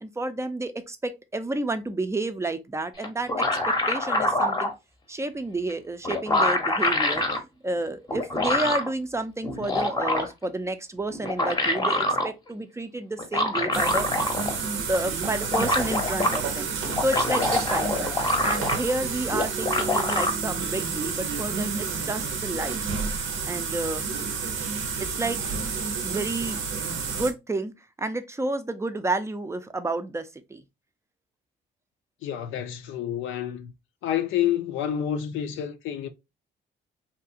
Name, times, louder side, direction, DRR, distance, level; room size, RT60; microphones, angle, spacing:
voice 1, 0.0-4.7 5.1-7.2 7.6-14.1 14.8-16.7 17.0-18.1 18.4-22.9 23.5-24.1 25.2-25.4 26.0-26.6 27.1-30.6, right 2 dB, 15° right, 0.4 m, -30 dB
sound 1, 3.0-4.7 5.7-5.8 6.0-7.4 8.1-8.9 9.4-10.5 11.1-12.3 13.2-14.6 14.9-15.0 15.2-16.4 16.8-19.0 19.3-20.3, left 2 dB, 20° left, 0.7 m, -25 dB
sound 2, 13.7-27.3, right 5 dB, 85° right, 0.7 m, -30 dB
voice 2, 32.2-33.7 34.0-36.1, left 10 dB, 80° left, 0.5 m, -28 dB
2.8 x 2.4 x 2.6 m
cardioid pair, 90°, 20 cm